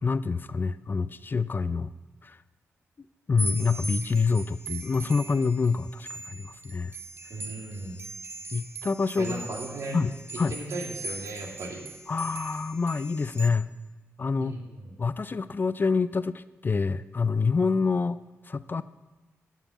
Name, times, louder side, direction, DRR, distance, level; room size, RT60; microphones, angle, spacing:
voice 1, 0.0-1.9 2.2-2.4 3.3-6.9 8.5-9.4 9.9-10.5 12.1-13.7 14.2-14.5 15.0-18.2 18.5-18.8, left 4 dB, 35° left, 15 dB, 0.4 m, -27 dB
sound 1, 3.4-13.5, right 2 dB, 45° right, 1.0 m, -40 dB
voice 2, 7.3-8.0 9.2-10.0 10.3-11.8 14.4-14.9, right 2 dB, 70° right, 0 dB, 2.4 m, -37 dB
11.5 x 5.6 x 8.4 m, 1.2 s
cardioid pair, 65°, 5 cm